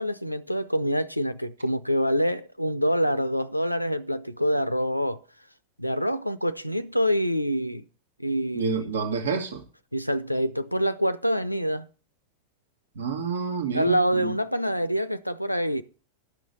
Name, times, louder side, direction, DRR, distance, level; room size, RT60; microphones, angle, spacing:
voice 1, 0.0-5.2 5.8-7.8 8.2-8.9 9.9-11.9 13.7-15.8, equal, 90° left, 0.5 m, -26 dB
voice 2, 8.5-9.6 12.9-14.3, right 6 dB, 65° right, 1.5 m, -29 dB
11.5 x 6.2 x 6.8 m
figure-of-eight pair, 90°, 0 cm